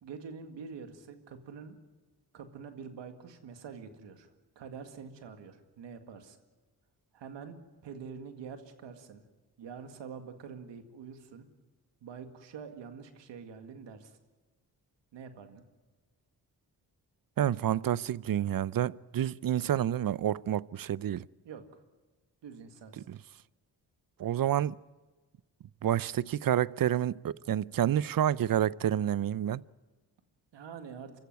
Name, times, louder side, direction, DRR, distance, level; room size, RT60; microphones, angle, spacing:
voice 1, 0.0-1.8 2.3-4.3 4.6-6.4 7.1-7.6 7.8-9.2 9.6-11.5 12.0-14.2 15.1-15.6 21.4-21.8 22.4-23.1 30.5-31.1, right 6 dB, 90° right, 2.1 m, -46 dB
voice 2, 17.4-21.3 23.1-23.2 24.2-24.8 25.8-29.6, right 11 dB, 55° right, 0.6 m, -29 dB
25.5 x 14.5 x 9.5 m
cardioid pair, 55°, 42 cm